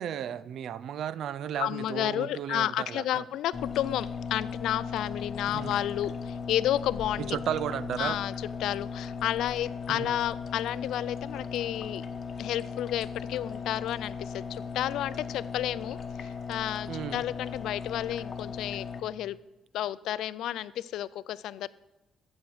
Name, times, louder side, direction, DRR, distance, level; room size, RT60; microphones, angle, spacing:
voice 1, 0.0-3.2 5.5-5.8 7.2-8.2 9.9-10.2 16.9-17.2, right 9 dB, 75° right, 0.4 m, -34 dB
voice 2, 1.6-7.4 8.0-12.0 12.4-19.4 19.7-21.7, left 12 dB, 85° left, 0.3 m, -31 dB
sound 1, 3.5-19.0, left 5 dB, 50° left, 1.1 m, -37 dB
15.0 x 7.3 x 4.8 m
cardioid pair, 90°, 0 cm